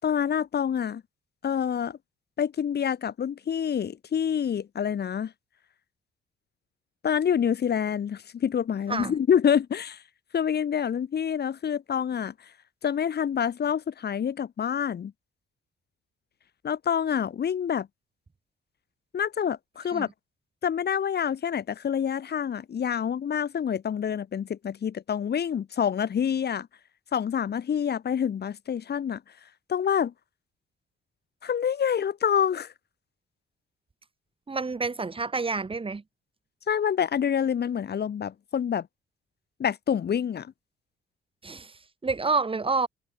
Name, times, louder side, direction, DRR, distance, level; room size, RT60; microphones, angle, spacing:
voice 1, 0.0-1.0 1.4-2.0 2.4-5.3 7.0-10.0 10.3-12.3 12.8-15.1 16.6-17.9 19.1-20.1 20.6-26.7 27.1-29.2 29.7-30.1 31.4-32.7 36.7-38.9 39.6-40.5, left 8 dB, 55° left, 5.4 m, -27 dB
voice 2, 34.5-36.0 41.4-42.9, right 4 dB, 25° right, 4.5 m, -28 dB
open air
cardioid pair, 90°, 20 cm